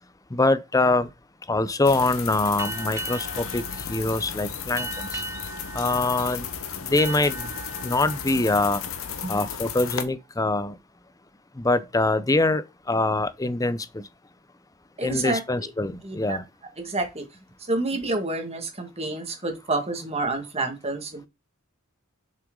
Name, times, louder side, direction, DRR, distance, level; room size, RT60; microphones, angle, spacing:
voice 1, 0.3-1.1 1.5-5.2 5.7-6.5 6.8-7.5 7.8-8.8 9.3-10.8 11.6-14.0 15.0-16.4, left 2 dB, 15° left, 0.6 m, -24 dB
sound 1, 1.8-10.0, left 7 dB, 70° left, 1.1 m, -34 dB
sound 2, 2.6-9.9, right 3 dB, 15° right, 1.0 m, -38 dB
voice 2, 15.0-15.7 16.0-16.4 16.8-17.2 17.6-21.3, right 2 dB, 30° right, 1.8 m, -29 dB
7.5 x 6.0 x 3.8 m
head